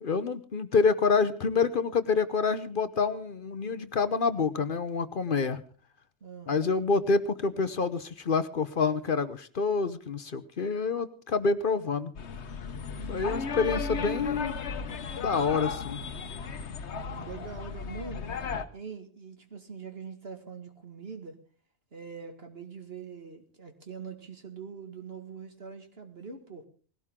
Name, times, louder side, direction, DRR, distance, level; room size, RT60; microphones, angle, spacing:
voice 1, 0.0-5.6 6.5-12.1 13.1-14.6 15.2-16.0, left 4 dB, 55° left, 13 dB, 1.0 m, -27 dB
voice 2, 6.2-6.6 16.9-18.3 18.7-21.4 21.9-26.6, right 5 dB, 60° right, 6 dB, 2.3 m, -43 dB
sound 1, 12.2-18.7, left 5 dB, 80° left, 1.3 m, -35 dB
19.5 x 17.0 x 3.7 m, 0.39 s
omnidirectional pair, 1.1 m